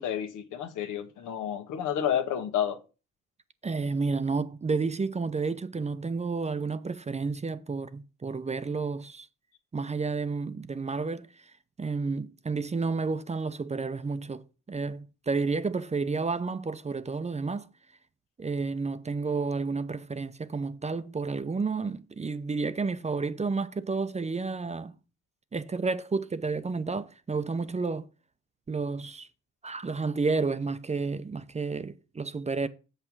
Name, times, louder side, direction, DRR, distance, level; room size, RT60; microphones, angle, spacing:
voice 1, 0.0-2.8, left 9 dB, 85° left, 1.4 m, -30 dB
voice 2, 3.6-9.3 9.7-11.5 11.8-17.7 18.4-24.9 25.5-28.1 28.7-29.3 29.6-32.7, right 4 dB, 20° right, 0.7 m, -31 dB
7.4 x 5.6 x 6.0 m
cardioid pair, 90°, 30 cm